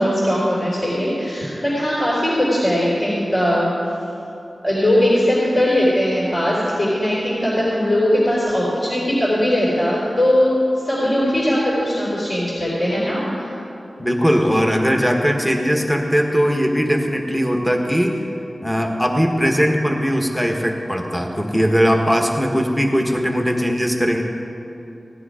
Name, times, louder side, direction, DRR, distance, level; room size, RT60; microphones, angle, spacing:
voice 1, 0.0-3.7 4.6-13.5, left 1 dB, 40° left, -7 dB, 3.7 m, -19 dB
voice 2, 14.0-18.2 18.6-24.2, equal, 5° left, 2 dB, 1.4 m, -19 dB
17.0 x 10.0 x 5.0 m, 2.9 s
wide cardioid pair, 55°, 0 cm